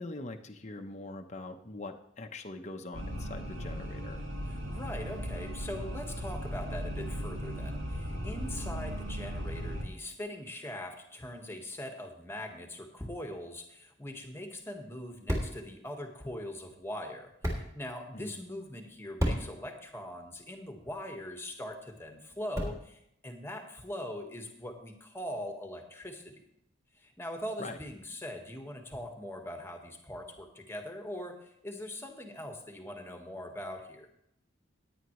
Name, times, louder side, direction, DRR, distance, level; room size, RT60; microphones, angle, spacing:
voice 1, 0.0-4.2 18.1-18.3 27.6-27.8, left 2 dB, 35° left, 5 dB, 0.8 m, -42 dB
sound 1, 2.9-9.8, equal, 70° right, 2.1 m, -37 dB
voice 2, 4.5-26.3 27.0-34.1, left 1 dB, 10° left, 3 dB, 1.4 m, -41 dB
sound 2, 14.0-23.1, equal, 15° right, 2.8 m, -39 dB
16.5 x 9.8 x 3.1 m, 0.74 s
head